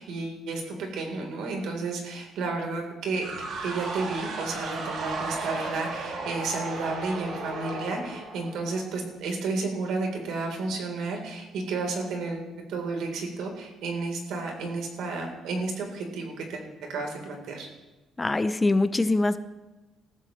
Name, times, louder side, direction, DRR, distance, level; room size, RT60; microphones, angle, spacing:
voice 1, 0.0-3.2 3.6-16.6 16.9-17.7, right 3 dB, 80° right, 2 dB, 3.5 m, -32 dB
sound 1, 3.2-9.0, right 3 dB, 60° right, 2.8 m, -35 dB
voice 2, 18.2-19.4, left 2 dB, 15° left, 12 dB, 0.5 m, -23 dB
20.0 x 14.5 x 3.1 m, 1.1 s
cardioid pair, 160°, 0 cm